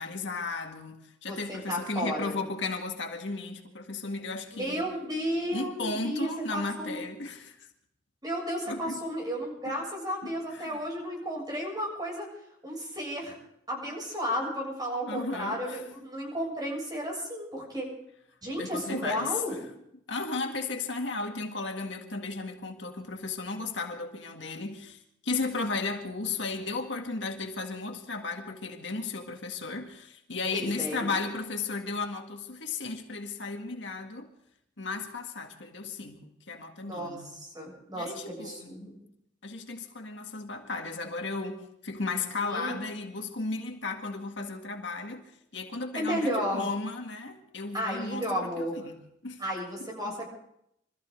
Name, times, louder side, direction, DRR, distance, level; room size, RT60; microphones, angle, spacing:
voice 1, 0.0-4.8 5.5-7.7 8.7-9.1 9.7-9.8 10.2-10.8 15.0-15.8 18.6-19.4 20.1-34.3 34.8-37.3 37.9-39.0 39.4-49.0 49.2-49.4, left 3 dB, 75° left, 1.8 m, -35 dB
voice 2, 1.3-2.4 4.5-7.0 8.2-12.3 12.6-13.3 13.7-17.9 18.4-19.6 30.5-31.1 36.8-39.0 42.5-42.8 45.9-46.7 47.7-48.8 49.4-50.3, equal, 20° right, 7.1 m, -33 dB
25.0 x 14.5 x 3.8 m
head